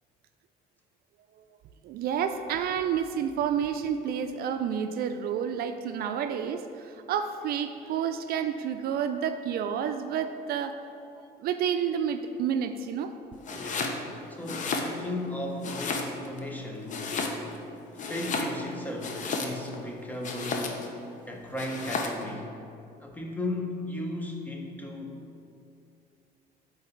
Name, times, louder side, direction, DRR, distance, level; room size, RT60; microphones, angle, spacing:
voice 1, 1.8-10.8 11.4-13.1, right 8 dB, 65° right, 8 dB, 0.4 m, -30 dB
Domestic sounds home sounds, 13.4-14.0 14.4-15.3 15.6-16.4 16.9-17.6 17.9-19.8 20.2-20.9 21.6-22.2, left 4 dB, 45° left, 0.7 m, -33 dB
voice 2, 13.5-17.2 17.9-20.9 21.3-22.5 23.0-25.2, left 1 dB, 10° left, 0 dB, 0.9 m, -36 dB
7.7 x 4.0 x 4.5 m, 2.5 s
cardioid pair, 110°, 17 cm